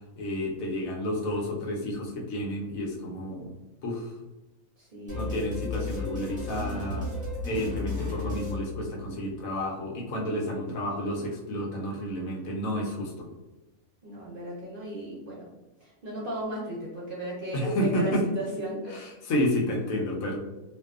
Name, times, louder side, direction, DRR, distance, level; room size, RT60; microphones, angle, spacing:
voice 1, 0.2-3.5 3.8-4.1 5.1-7.1 7.4-13.3 17.5-18.2 19.0-20.4, equal, 75° left, -1 dB, 1.0 m, -30 dB
voice 2, 4.8-5.3 14.0-15.5 15.8-19.1, right 1 dB, 55° right, -5 dB, 0.6 m, -36 dB
sound 1, 5.1-9.4, left 3 dB, 10° right, 0.7 m, -34 dB
2.6 x 2.2 x 2.3 m, 1.0 s
omnidirectional pair, 1.5 m